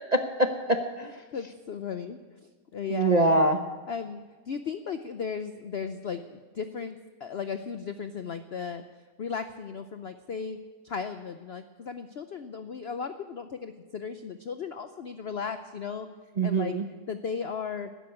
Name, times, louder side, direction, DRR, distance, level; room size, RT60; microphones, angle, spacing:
voice 1, 0.1-1.2 2.9-3.6 16.4-16.8, right 2 dB, 40° right, 5 dB, 0.6 m, -24 dB
voice 2, 1.3-3.3 3.9-8.8 9.2-10.6 10.8-16.1 16.4-16.7 17.1-17.9, left 6 dB, 65° left, 9 dB, 0.6 m, -36 dB
12.5 x 10.5 x 9.6 m, 1.4 s
omnidirectional pair, 1.8 m